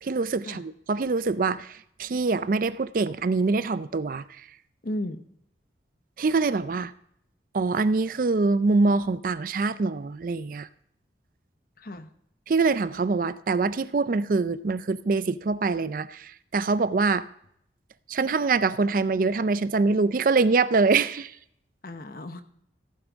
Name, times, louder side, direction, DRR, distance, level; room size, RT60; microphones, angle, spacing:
voice 1, 0.0-4.5 6.2-6.9 7.5-10.7 12.5-17.3 18.1-21.4, right 4 dB, 50° right, 15 dB, 0.4 m, -24 dB
voice 2, 4.8-5.2 11.8-12.1 21.8-22.4, left 1 dB, 55° left, 10 dB, 0.9 m, -34 dB
15.0 x 9.0 x 3.5 m, 0.70 s
head